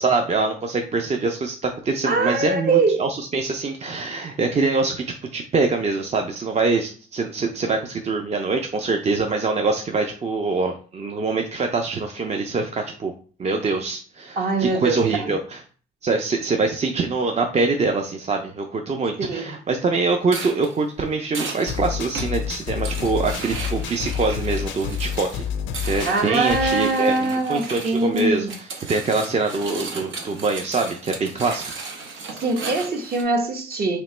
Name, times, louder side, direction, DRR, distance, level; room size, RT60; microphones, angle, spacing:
voice 1, 0.0-13.1 13.4-15.6 16.0-25.5 25.9-31.6, right 3 dB, 35° right, 0.5 m, -24 dB
voice 2, 2.0-3.1 14.4-15.3 19.2-19.5 26.1-28.5 32.4-34.0, right 3 dB, 50° right, 0.9 m, -22 dB
sound 1, 20.2-33.2, right 4 dB, 80° right, 0.8 m, -35 dB
sound 2, 21.7-27.0, left 8 dB, 75° left, 0.5 m, -29 dB
3.1 x 2.9 x 4.2 m
cardioid pair, 90°, 20 cm